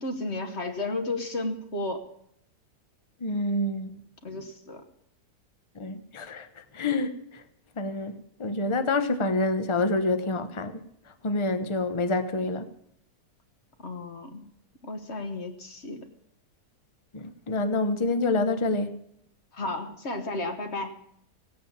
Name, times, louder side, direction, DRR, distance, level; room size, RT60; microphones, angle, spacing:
voice 1, 0.0-2.0 4.2-4.8 13.8-14.4 14.8-16.1 19.5-21.0, left 2 dB, 45° left, 1.4 m, -33 dB
voice 2, 3.2-4.0 5.8-6.5 6.7-7.2 7.8-10.8 11.2-12.7 17.1-19.0, left 2 dB, 25° left, 0.7 m, -27 dB
18.0 x 8.5 x 7.2 m
omnidirectional pair, 1.8 m